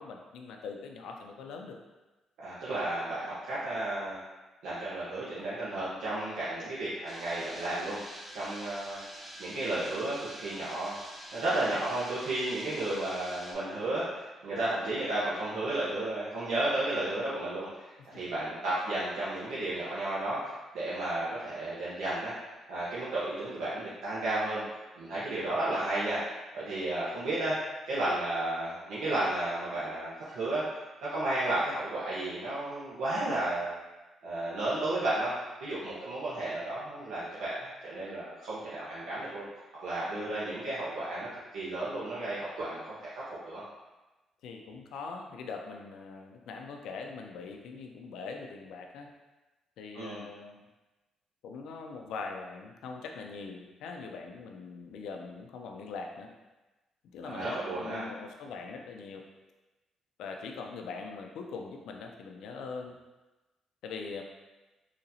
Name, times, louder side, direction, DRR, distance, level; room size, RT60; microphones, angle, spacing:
voice 1, 0.0-1.8 44.4-49.1 49.8-50.6 51.4-56.3 57.1-59.3 60.2-63.0 63.8-64.2, left 4 dB, 85° left, 2 dB, 0.4 m, -42 dB
voice 2, 2.4-4.2 4.6-11.0 11.3-22.3 22.7-24.6 24.9-26.2 26.5-27.6 27.9-30.6 31.0-33.9 34.2-35.3 35.6-39.4 39.8-43.1 43.4-43.6 49.9-50.2 57.2-58.0, right 2 dB, 85° right, -10 dB, 0.9 m, -33 dB
sound 1, 7.1-13.5, right 1 dB, 30° right, 1.2 m, -46 dB
4.1 x 2.8 x 2.7 m, 1.1 s
cardioid pair, 90°, 0 cm